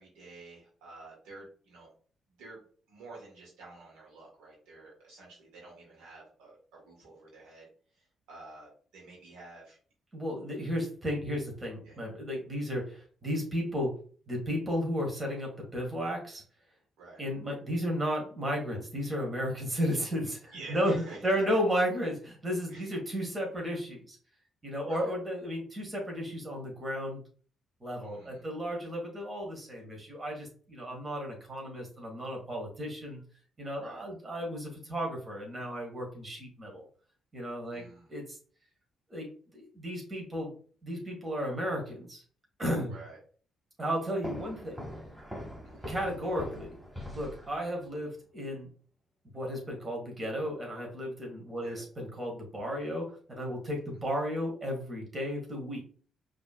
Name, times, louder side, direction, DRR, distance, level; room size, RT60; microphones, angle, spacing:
voice 1, 0.0-1.9 2.4-2.6 2.9-7.7 8.0-9.8 11.9-12.0 17.0-17.2 20.5-21.6 22.7-22.9 24.9-25.1 28.0-28.4 33.8-34.0 37.7-38.1 42.9-43.2 44.6-44.7 45.6-46.0 51.6-51.8, right 3 dB, 70° right, -3 dB, 1.8 m, -50 dB
voice 2, 10.1-14.0 14.3-16.4 17.2-24.2 24.6-27.2 27.8-33.2 33.6-36.8 37.3-38.4 39.1-40.5 40.8-42.2 42.6-43.0 43.8-44.9 45.6-46.8 47.1-48.7 49.3-55.8, equal, 30° right, 0 dB, 2.0 m, -34 dB
sound 1, 44.2-47.9, equal, 15° right, 2.1 m, -42 dB
5.0 x 3.4 x 2.5 m, 0.43 s
hypercardioid pair, 40°, 0 cm